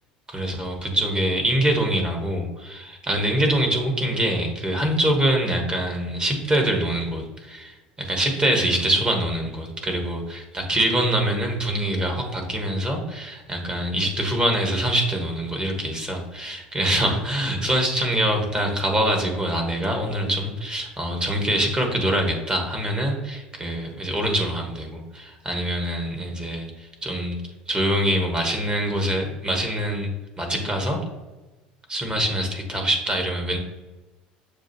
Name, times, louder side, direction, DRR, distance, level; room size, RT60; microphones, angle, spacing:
voice 1, 0.3-27.4 27.7-30.1 30.4-31.0 31.9-33.6, right 1 dB, 20° right, 2 dB, 1.3 m, -24 dB
6.9 x 2.5 x 2.8 m, 1.2 s
hypercardioid pair, 70°, 4 cm